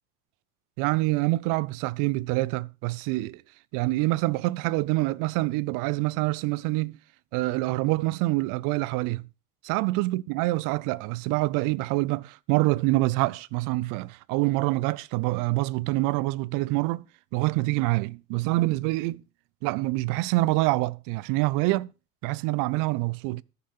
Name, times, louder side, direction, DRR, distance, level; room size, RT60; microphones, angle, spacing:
voice 1, 0.8-3.4 3.7-7.0 7.3-9.3 9.6-17.1 17.3-19.2 19.6-21.9 22.2-23.4, right 20 dB, 45° right, 0.6 m, -26 dB
14.0 x 6.8 x 5.5 m
hypercardioid pair, 100°, 45 cm